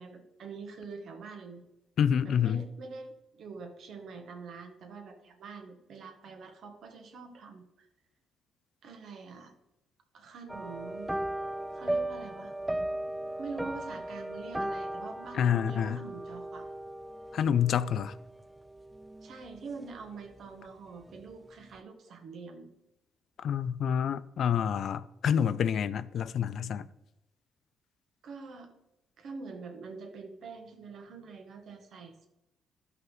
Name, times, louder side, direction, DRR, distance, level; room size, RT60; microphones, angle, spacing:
voice 1, 0.0-1.6 2.2-7.9 8.8-9.5 10.1-11.1 11.7-12.5 13.4-16.7 19.2-22.7 28.2-28.7 29.2-32.3, right 4 dB, 65° right, 1.6 m, -45 dB
voice 2, 2.0-2.6 15.4-16.0 17.3-18.1 23.4-26.9, left 8 dB, 65° left, 0.4 m, -28 dB
sound 1, 10.5-20.1 20.3-20.7 21.1-21.2, right 1 dB, 10° right, 0.3 m, -37 dB
12.0 x 5.5 x 4.0 m
cardioid pair, 90°, 0 cm